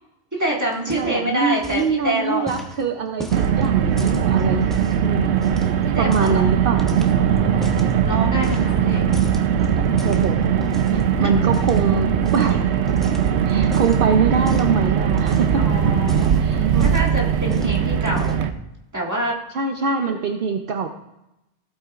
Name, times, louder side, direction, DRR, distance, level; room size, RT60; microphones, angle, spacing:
voice 1, 0.3-2.4 5.9-6.4 7.5-9.0 11.2-11.3 15.5-18.4 18.9-19.4, right 1 dB, 15° right, -3 dB, 1.8 m, -26 dB
sound 1, 0.7-1.3 1.6-2.0 2.5-5.0 5.4-6.4 6.8-7.9 8.4-8.9 9.1-11.0 11.5-11.8 12.2-12.5 12.9-14.0 14.4-14.7 15.1-15.6 15.9-17.2 17.5-17.8 18.0-18.5, equal, ahead, 0.9 m, -36 dB
voice 2, 0.9-4.7 5.0-5.3 6.0-6.9 10.0-10.4 10.9-12.6 13.4-15.6 16.4-16.9 17.5-17.7 19.5-20.9, right 5 dB, 60° right, 5 dB, 0.8 m, -23 dB
Car, 3.3-18.5, right 8 dB, 90° right, 0.9 m, -20 dB
15.5 x 8.7 x 2.4 m, 0.89 s
omnidirectional pair, 1.1 m